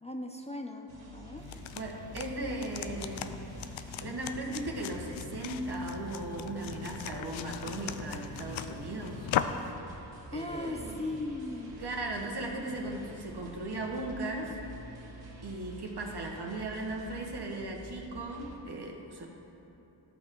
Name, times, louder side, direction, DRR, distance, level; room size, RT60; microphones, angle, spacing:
voice 1, 0.0-1.5 10.3-11.8, left 2 dB, 15° left, 3 dB, 0.8 m, -38 dB
sound 1, 0.9-18.5, right 2 dB, 70° right, 2.0 m, -49 dB
sound 2, 1.4-9.7, left 9 dB, 75° left, 0.6 m, -38 dB
voice 2, 1.7-3.4 4.0-9.3 9.6-9.8 10.3-11.1 11.8-14.6 15.4-19.3, right 2 dB, 55° right, 0 dB, 1.7 m, -37 dB
13.5 x 5.9 x 4.7 m, 2.9 s
supercardioid pair, 45°, 47 cm